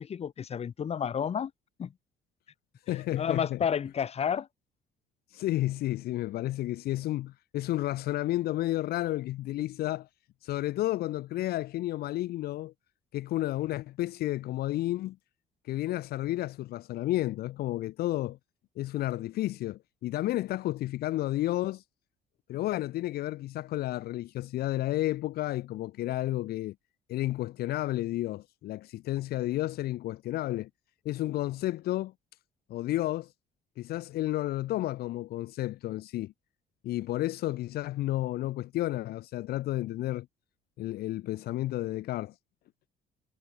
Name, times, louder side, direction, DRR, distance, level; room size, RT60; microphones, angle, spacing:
voice 1, 0.0-1.5 1.8-1.9 2.9-4.5, left 8 dB, 40° left, 1.2 m, -31 dB
voice 2, 2.9-3.6 5.3-10.1 10.4-12.7 13.1-15.2 15.6-18.4 18.8-21.8 22.5-26.7 27.1-30.7 31.0-32.1 32.7-33.3 33.8-36.3 36.8-40.3 40.8-42.3, left 15 dB, 65° left, 0.6 m, -31 dB
cardioid pair, 110°, 17 cm